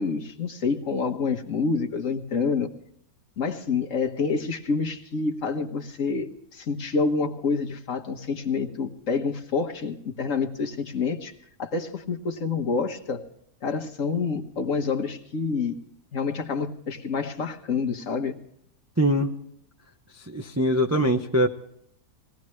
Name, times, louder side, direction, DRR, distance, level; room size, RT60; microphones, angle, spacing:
voice 1, 0.0-2.7 3.4-11.3 11.6-13.2 13.6-15.8 16.1-18.4, left 4 dB, 50° left, 1.5 m, -27 dB
voice 2, 19.0-19.3 20.3-21.5, equal, 15° right, 0.5 m, -22 dB
20.5 x 17.0 x 3.2 m
omnidirectional pair, 1.8 m